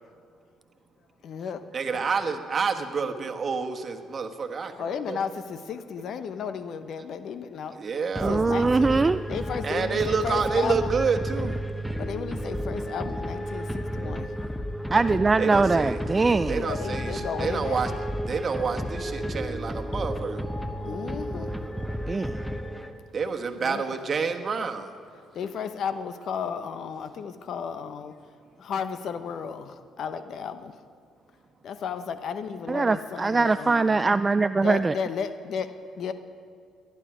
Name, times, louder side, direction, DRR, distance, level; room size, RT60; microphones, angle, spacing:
voice 1, 1.2-1.6 1.9-2.1 4.8-7.8 8.2-9.0 9.3-10.9 12.0-14.3 14.9-15.6 16.6-17.8 20.8-21.5 22.5-22.6 23.6-23.8 25.3-28.1 28.6-30.7 31.6-34.0 34.6-36.1, left 6 dB, 60° left, 11 dB, 0.9 m, -34 dB
voice 2, 1.7-5.2 7.8-8.4 9.6-11.5 15.4-16.0 16.5-17.9 18.3-20.5 23.1-24.9, right 5 dB, 45° right, 5 dB, 1.3 m, -28 dB
sound 1, 8.1-23.2, equal, ahead, 1.1 m, -32 dB
voice 3, 8.2-9.2 14.9-16.6 22.1-22.4 32.7-34.9, right 3 dB, 30° right, 13 dB, 0.3 m, -22 dB
19.5 x 11.0 x 5.0 m, 2.3 s
hypercardioid pair, 55°, 0 cm